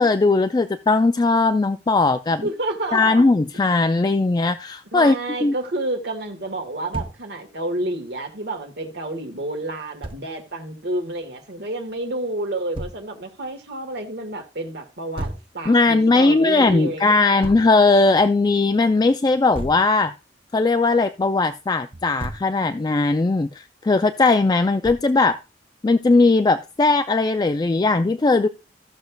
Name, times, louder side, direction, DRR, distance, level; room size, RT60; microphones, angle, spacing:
voice 1, 0.0-2.5 2.9-5.1 5.4-5.5 15.7-20.1 20.5-25.4 25.8-28.5, left 3 dB, 20° left, 0.3 m, -18 dB
voice 2, 2.4-3.2 4.9-17.5, right 1 dB, 65° right, 1.7 m, -30 dB
Thump thud, 6.9-7.2 10.0-10.2 12.7-13.0 15.2-15.5 17.4-17.7 19.5-19.9 21.9-22.5 24.8-25.2, right 1 dB, 30° right, 0.7 m, -32 dB
15.0 x 6.4 x 2.3 m
head